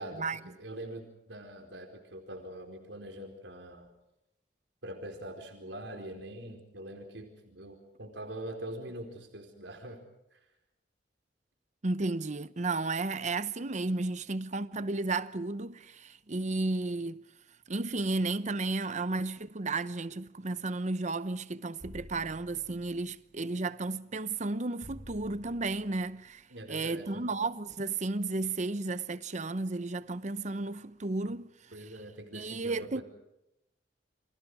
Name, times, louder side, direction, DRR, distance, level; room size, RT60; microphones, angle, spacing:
voice 1, 0.0-3.9 4.8-10.0 10.3-10.4 26.5-27.3 31.3-31.4 31.7-33.0, right 1 dB, 80° right, 4.5 m, -43 dB
voice 2, 11.8-17.2 17.7-31.5 32.3-33.0, right 3 dB, 40° right, 0.9 m, -33 dB
sound 1, 21.8-23.2 24.8-26.2, equal, 10° right, 7.1 m, -51 dB
29.5 x 26.0 x 4.9 m
head